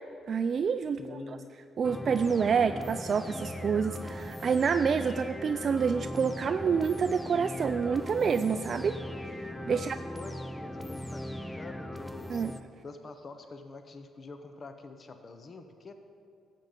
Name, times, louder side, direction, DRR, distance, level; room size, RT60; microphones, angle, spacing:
voice 1, 0.3-1.0 1.8-9.0 9.7-10.0 12.3-12.5, right 6 dB, 50° right, 9 dB, 0.3 m, -27 dB
voice 2, 1.0-1.5 9.7-9.9 10.1-12.4 12.8-15.9, left 3 dB, 40° left, 7 dB, 0.8 m, -46 dB
sound 1, 1.8-12.6, left 1 dB, 10° left, 0.6 m, -39 dB
12.0 x 7.5 x 5.2 m, 2.4 s
cardioid pair, 90°, 0 cm